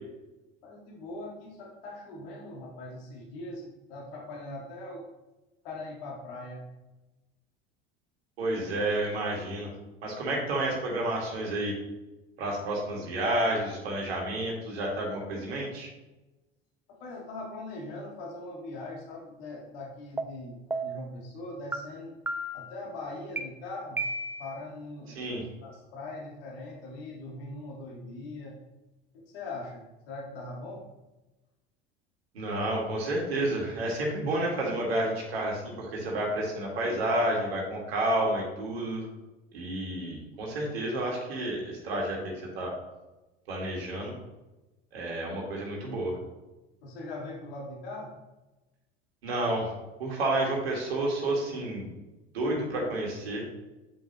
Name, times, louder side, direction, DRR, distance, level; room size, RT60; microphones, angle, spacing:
voice 1, 0.6-5.1 5.6-6.7 16.9-22.1 22.5-24.0 24.4-25.3 25.6-28.6 29.1-30.9 46.8-48.1, left 2 dB, 70° left, -2 dB, 1.8 m, -41 dB
voice 2, 8.4-9.7 10.0-11.7 12.4-15.9 25.2-25.4 32.3-39.1 39.5-42.7 43.5-44.2 44.9-46.2 49.2-49.7 50.0-51.9 52.3-53.5, right 1 dB, 80° right, -2 dB, 1.9 m, -30 dB
sound 1, 20.2-20.3 20.7-21.1 21.7-21.8 22.3-22.7 23.4-23.5 24.0-24.6, right 2 dB, 5° right, 0.6 m, -32 dB
8.4 x 5.3 x 3.0 m, 1.1 s
hypercardioid pair, 75°, 31 cm